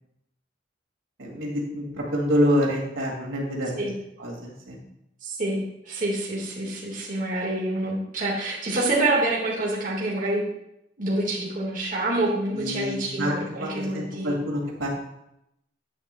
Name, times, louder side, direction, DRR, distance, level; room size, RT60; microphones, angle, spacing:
voice 1, 1.2-3.7 4.2-4.8 12.5-14.9, equal, 90° right, -2 dB, 2.3 m, -27 dB
voice 2, 5.2-10.4 11.0-14.4, right 2 dB, 45° right, -4 dB, 1.8 m, -27 dB
9.6 x 8.8 x 2.3 m, 0.81 s
head